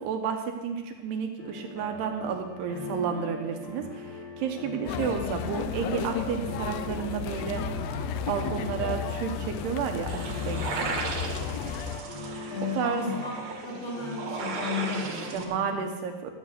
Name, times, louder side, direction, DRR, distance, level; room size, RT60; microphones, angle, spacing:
voice 1, 0.0-7.6 8.3-10.9 12.8-13.1 15.1-16.3, right 7 dB, 75° right, 4 dB, 2.9 m, -31 dB
sound 1, 1.4-15.3, left 1 dB, 65° left, 3.7 m, -40 dB
sound 2, 4.9-12.0, left 10 dB, 85° left, 2.4 m, -34 dB
sound 3, 10.1-15.4, right 4 dB, 55° right, 2.1 m, -36 dB
voice 2, 12.5-13.3 13.6-15.8, left 5 dB, 40° left, -3 dB, 3.1 m, -34 dB
13.5 x 7.3 x 6.7 m, 1.3 s
omnidirectional pair, 5.0 m